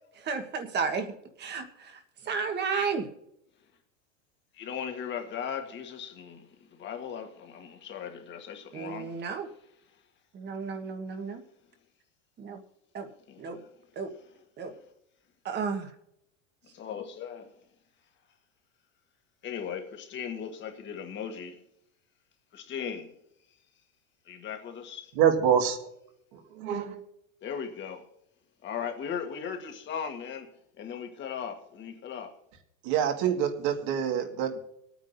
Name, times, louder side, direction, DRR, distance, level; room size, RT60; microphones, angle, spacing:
voice 1, 0.1-3.1 8.7-9.5 10.3-11.4 12.4-12.6 12.9-13.1 13.4-13.6 13.9-14.1 14.6-14.7 15.4-15.9, right 5 dB, 25° right, 1.4 m, -33 dB
voice 2, 4.5-9.3 13.3-13.7 16.7-17.6 19.4-21.6 22.5-23.1 24.3-25.1 27.4-28.1 28.6-30.5 30.8-32.4, left 7 dB, 30° left, 1.6 m, -38 dB
voice 3, 25.2-25.8 26.3-27.0 32.8-34.6, right 8 dB, 55° right, 2.0 m, -26 dB
25.5 x 9.3 x 2.7 m
supercardioid pair, 145°, 38 cm